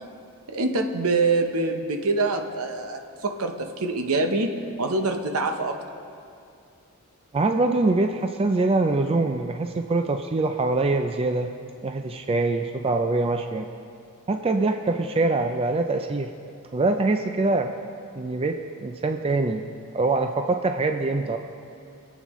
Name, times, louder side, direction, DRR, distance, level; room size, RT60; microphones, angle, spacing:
voice 1, 0.5-4.5 4.8-5.8, right 3 dB, 70° right, 5 dB, 0.9 m, -25 dB
voice 2, 7.3-11.5 11.8-13.7 14.3-16.3 16.7-17.7 18.2-19.6 19.9-21.4, right 3 dB, 25° right, 6 dB, 0.4 m, -24 dB
22.5 x 8.3 x 3.1 m, 2.4 s
head